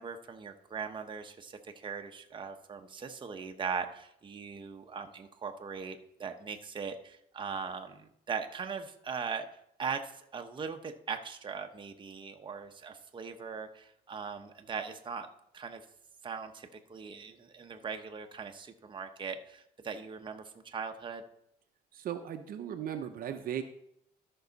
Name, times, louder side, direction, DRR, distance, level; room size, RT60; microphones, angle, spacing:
voice 1, 0.0-9.5 9.8-15.3 15.5-15.8 16.2-21.2, right 6 dB, 30° right, 5 dB, 0.9 m, -40 dB
voice 2, 21.9-23.6, right 9 dB, 60° right, 7 dB, 0.8 m, -37 dB
13.0 x 5.6 x 4.0 m, 0.77 s
cardioid pair, 110°, 17 cm